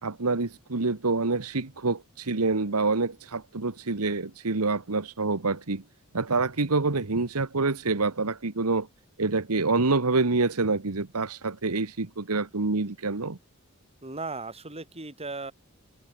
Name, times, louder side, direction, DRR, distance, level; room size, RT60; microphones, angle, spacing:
voice 1, 0.0-5.8 6.1-8.9 9.2-13.4, right 3 dB, 75° right, 1.4 m, -27 dB
voice 2, 14.0-15.5, right 3 dB, 30° right, 5.3 m, -36 dB
open air
head